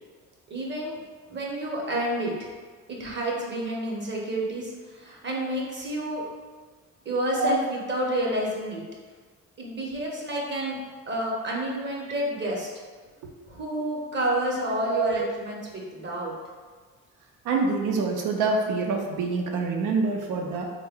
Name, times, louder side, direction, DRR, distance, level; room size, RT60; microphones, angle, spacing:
voice 1, 0.5-1.0 1.3-2.5 2.9-6.3 7.0-8.8 9.6-10.8 11.1-12.7 13.5-16.3, right 1 dB, 35° right, -2 dB, 0.8 m, -29 dB
voice 2, 17.4-20.7, right 3 dB, 85° right, 1 dB, 0.6 m, -26 dB
3.3 x 2.2 x 3.5 m, 1.5 s
cardioid pair, 90°, 30 cm